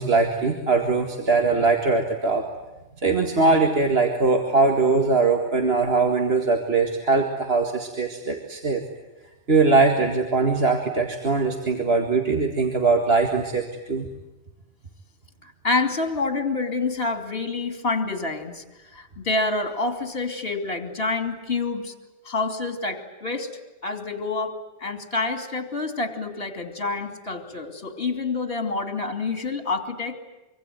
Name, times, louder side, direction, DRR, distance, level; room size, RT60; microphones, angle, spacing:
voice 1, 0.0-2.4 3.0-8.8 9.5-14.1, right 3 dB, 60° right, 3 dB, 2.2 m, -21 dB
voice 2, 15.4-18.6 18.9-21.9 22.2-23.5 23.8-30.1, left 3 dB, 55° left, 7 dB, 3.0 m, -27 dB
25.0 x 25.0 x 9.4 m, 1.0 s
omnidirectional pair, 1.2 m